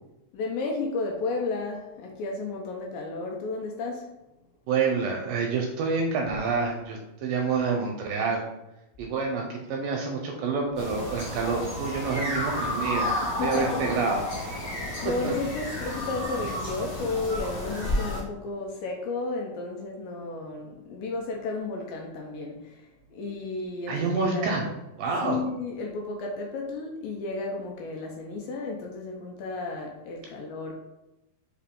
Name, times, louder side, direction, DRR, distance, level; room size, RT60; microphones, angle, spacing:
voice 1, 0.3-4.1 13.2-13.8 14.6-24.7 25.2-30.7, left 3 dB, 80° left, 0 dB, 2.0 m, -33 dB
voice 2, 4.7-8.4 9.0-13.2 13.4-14.3 15.2-15.3 23.9-24.7 25.0-25.4, right 4 dB, 80° right, 1 dB, 2.0 m, -28 dB
sound 1, 10.8-18.2, left 1 dB, 55° left, 0.9 m, -31 dB
5.6 x 2.3 x 3.5 m, 0.94 s
omnidirectional pair, 4.3 m